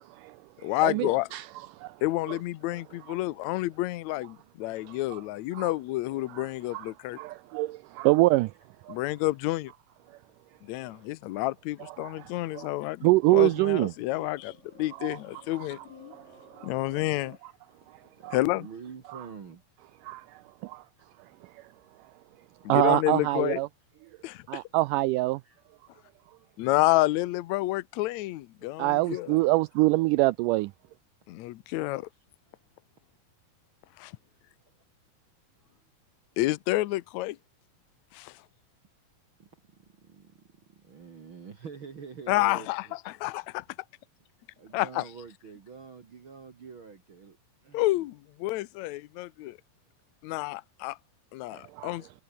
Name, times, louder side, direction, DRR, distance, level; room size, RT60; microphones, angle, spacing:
voice 1, 0.0-1.5 1.7-2.0 2.3-2.4 3.1-3.2 4.9-5.2 5.5-5.7 6.3-6.9 7.2-8.5 8.9-9.0 12.0-12.7 13.0-13.9 15.0-15.2 15.5-15.7 16.6-16.7 18.2-18.4 19.1-19.2 20.1-20.2 20.6-20.8 21.5-21.6 22.7-23.7 24.5-25.4 28.8-30.7 51.5-52.0, right 20 dB, 85° right, 1.8 m, -26 dB
voice 2, 0.6-1.3 2.0-7.2 8.9-9.7 10.6-15.8 16.6-17.4 18.3-18.7 22.7-23.6 24.2-24.4 26.6-29.4 31.3-32.1 34.0-34.1 36.4-37.4 38.1-38.3 42.3-42.9 43.2-43.6 44.7-45.0 47.7-49.6 50.2-51.0 51.3-52.0, left 18 dB, 90° left, 1.6 m, -29 dB
sound 1, 12.3-17.4, right 5 dB, 65° right, 7.3 m, -55 dB
voice 3, 18.1-19.6 20.7-21.0 21.7-22.0 22.8-23.2 25.4-25.6 25.9-26.5 32.5-32.6 35.6-35.9 39.4-43.0 44.6-47.4 47.6-48.1, right 6 dB, 45° right, 2.1 m, -47 dB
omnidirectional pair, 4.2 m